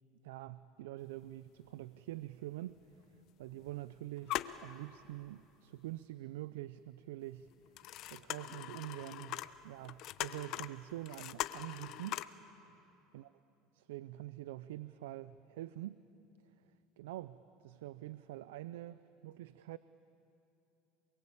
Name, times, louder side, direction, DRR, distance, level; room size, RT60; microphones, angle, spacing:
voice 1, 0.2-7.5 8.1-12.8 13.1-13.3 13.7-16.0 16.4-19.8, right 15 dB, 90° right, 15 dB, 0.5 m, -46 dB
sound 1, 1.1-1.2 1.5-1.6 2.5-2.6 3.1-3.8 4.1-5.2 5.8-5.9 7.5-12.3, left 14 dB, 55° left, 0.8 m, -42 dB
28.0 x 22.0 x 8.6 m, 2.8 s
supercardioid pair, 110°, 0 cm